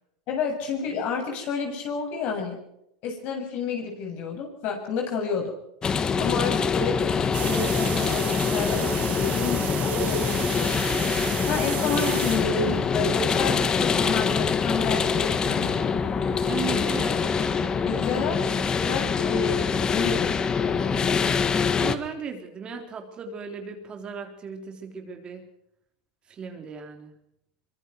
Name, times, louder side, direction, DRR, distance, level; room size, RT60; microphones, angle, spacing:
voice 1, 0.3-2.6 3.0-5.5 6.2-7.0 7.4-11.1 11.5-15.9 16.7-16.9 17.8-18.5 18.8-21.2, left 5 dB, 50° left, 2 dB, 7.4 m, -30 dB
sound 1, 5.8-21.9, left 5 dB, 25° left, 1.7 m, -24 dB
sound 2, 7.3-13.2, right 16 dB, 45° right, 1.3 m, -35 dB
voice 2, 16.5-17.2 21.8-25.5 26.3-27.2, right 6 dB, 30° right, 4 dB, 3.7 m, -36 dB
24.5 x 23.5 x 4.7 m, 0.79 s
supercardioid pair, 120°, 3 cm